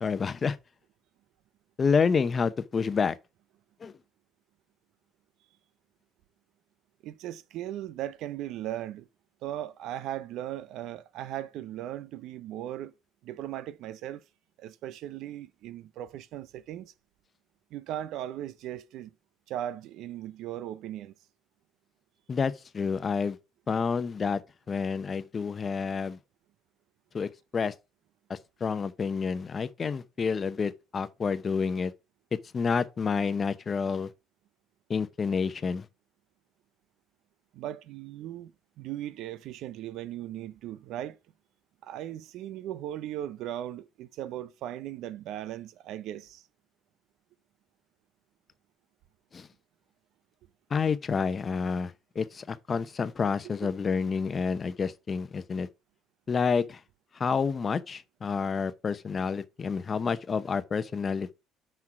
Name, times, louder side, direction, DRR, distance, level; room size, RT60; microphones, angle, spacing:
voice 1, 0.0-0.6 1.8-3.2 3.8-3.9 22.3-23.4 23.7-24.4 24.7-26.2 27.1-27.7 28.3-31.9 32.5-34.1 34.9-35.9 49.3-49.5 50.7-55.7 56.3-56.8 57.1-61.3, left 5 dB, 35° left, 0.7 m, -29 dB
voice 2, 7.0-9.1 9.4-12.9 13.2-14.2 14.6-16.9 17.7-19.1 19.5-21.1 37.5-38.5 38.8-41.2 41.8-46.4 53.6-53.7, right 12 dB, 75° right, 0.5 m, -38 dB
6.1 x 4.5 x 5.8 m
cardioid pair, 95°, 0 cm